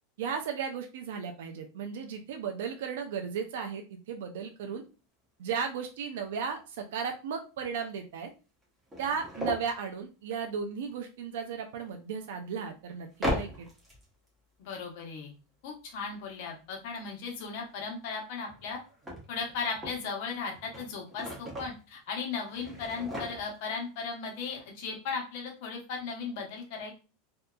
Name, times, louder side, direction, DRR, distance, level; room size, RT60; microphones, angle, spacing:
voice 1, 0.2-4.8 5.4-8.3 9.0-13.7, right 6 dB, 80° right, 4 dB, 0.4 m, -35 dB
sound 1, 5.4-5.5 5.8-5.9 6.4-6.5 7.6-7.7 7.9-8.0 8.6-9.7 11.8-11.9 13.1-14.3 18.2-20.1 20.5-21.8 22.4-23.8 24.1-24.2 24.4-24.6, equal, 10° right, 0.8 m, -38 dB
voice 2, 14.6-15.3 15.6-18.8 19.3-26.9, left 5 dB, 60° left, 1 dB, 0.9 m, -36 dB
2.6 x 2.2 x 2.3 m, 0.34 s
supercardioid pair, 145°, 0 cm